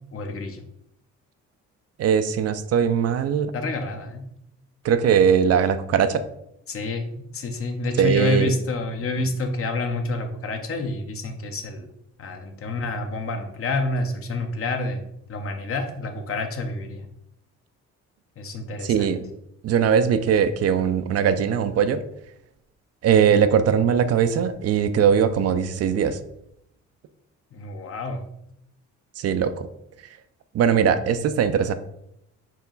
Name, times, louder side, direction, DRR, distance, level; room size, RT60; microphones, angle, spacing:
voice 1, 0.1-0.6 3.5-4.2 6.7-11.9 12.2-17.1 18.4-19.1 27.5-28.2, left 2 dB, 45° left, 5 dB, 0.8 m, -28 dB
voice 2, 2.0-3.5 4.8-6.2 8.0-8.5 18.8-19.2 19.6-22.0 23.0-26.2 29.2-29.7 30.5-31.7, right 7 dB, 55° right, 11 dB, 0.4 m, -20 dB
4.5 x 2.9 x 3.9 m, 0.78 s
cardioid pair, 90°, 30 cm